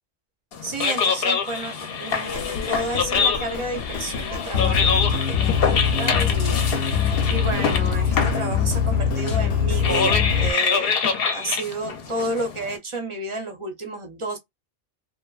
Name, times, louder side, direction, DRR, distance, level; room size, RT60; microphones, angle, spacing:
sound 1, 0.5-12.8, left 6 dB, 60° left, 0.8 m, -25 dB
voice 1, 0.6-11.0 11.3-14.4, right 2 dB, 40° right, 0.5 m, -31 dB
sound 2, 2.3-10.5, left 7 dB, 85° left, 1.0 m, -24 dB
2.9 x 2.2 x 2.2 m
omnidirectional pair, 1.2 m